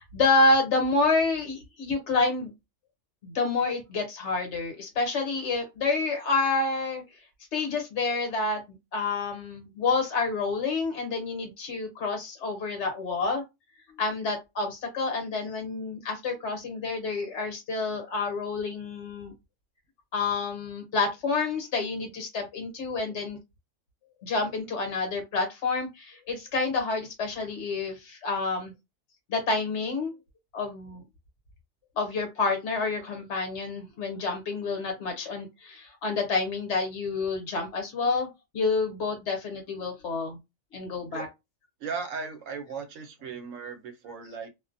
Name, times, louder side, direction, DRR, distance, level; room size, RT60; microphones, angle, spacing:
voice 1, 0.0-2.5 3.2-7.0 7.5-8.6 8.9-13.4 14.0-19.3 20.1-23.4 24.2-28.7 29.3-30.1 30.5-31.0 32.0-38.3 38.5-40.4 40.7-41.3, left 3 dB, 65° left, 1.1 m, -28 dB
voice 2, 41.8-44.5, right 5 dB, 80° right, 1.0 m, -37 dB
2.5 x 2.1 x 2.5 m
omnidirectional pair, 1.3 m